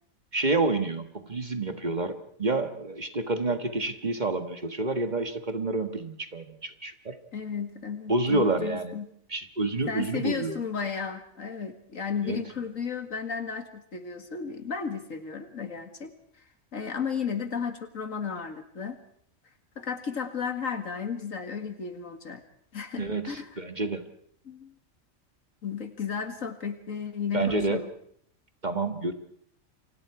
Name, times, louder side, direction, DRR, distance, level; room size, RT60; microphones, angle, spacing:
voice 1, 0.3-7.2 8.1-9.0 9.3-10.6 12.2-12.4 23.0-24.0 27.3-27.8 28.6-29.1, right 2 dB, 35° right, 7 dB, 1.6 m, -28 dB
voice 2, 7.3-9.1 9.9-16.1 16.7-19.0 19.8-22.4 22.7-23.5 24.5-24.7 25.6-27.9, left 6 dB, 80° left, 7 dB, 2.5 m, -34 dB
29.0 x 25.0 x 4.8 m, 0.67 s
omnidirectional pair, 1.4 m